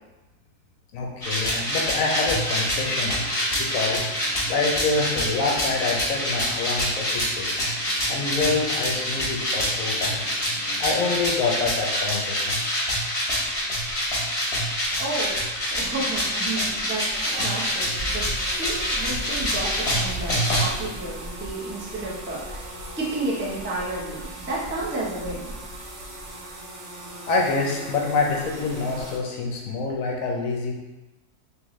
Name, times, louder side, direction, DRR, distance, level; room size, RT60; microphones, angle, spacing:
voice 1, 0.9-3.3 3.6-4.1 4.5-7.6 8.1-10.3 10.8-12.6 27.3-30.8, left 3 dB, 65° left, -1 dB, 0.9 m, -26 dB
sound 1, 1.2-20.6, equal, 25° left, 1.0 m, -26 dB
sound 2, 1.7-11.5, right 1 dB, 90° right, 1.4 m, -43 dB
sound 3, 13.3-29.2, right 1 dB, 60° right, 0.9 m, -38 dB
voice 2, 15.0-17.0 17.3-18.3 18.5-22.7 23.0-25.5, right 2 dB, 20° right, -6 dB, 0.3 m, -31 dB
3.6 x 3.3 x 3.0 m, 1.1 s
omnidirectional pair, 1.7 m